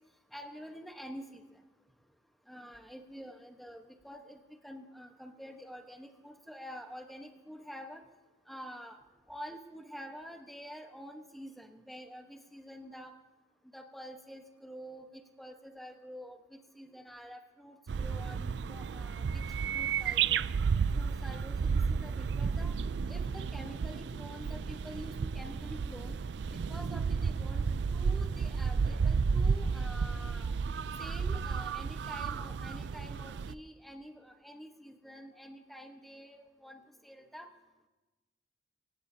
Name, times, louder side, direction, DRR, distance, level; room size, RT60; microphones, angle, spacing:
voice 1, 0.3-1.4 2.5-8.0 8.5-9.0 9.3-13.1 13.7-19.4 19.7-20.4 20.9-22.7 23.1-26.2 26.5-27.7 27.9-30.5 31.0-37.5, equal, ahead, 3 dB, 1.1 m, -47 dB
sound 1, 17.9-33.5, right 5 dB, 75° right, 0.4 m, -32 dB
25.0 x 16.5 x 2.8 m, 1.2 s
head